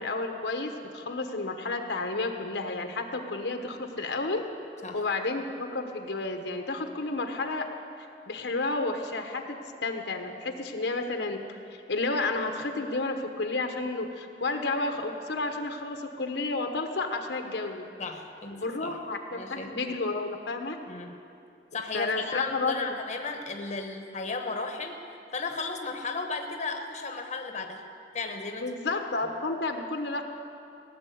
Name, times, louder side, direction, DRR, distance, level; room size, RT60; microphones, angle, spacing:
voice 1, 0.0-4.4 4.9-7.7 8.3-9.6 9.8-11.4 11.9-17.9 18.5-20.8 21.9-22.9 28.6-30.2, left 3 dB, 75° left, 5 dB, 1.1 m, -31 dB
voice 2, 18.0-19.0 19.3-19.9 20.9-21.2 21.7-27.8 28.1-29.0, left 3 dB, 40° left, 4 dB, 1.0 m, -35 dB
17.0 x 7.4 x 9.3 m, 2.6 s
head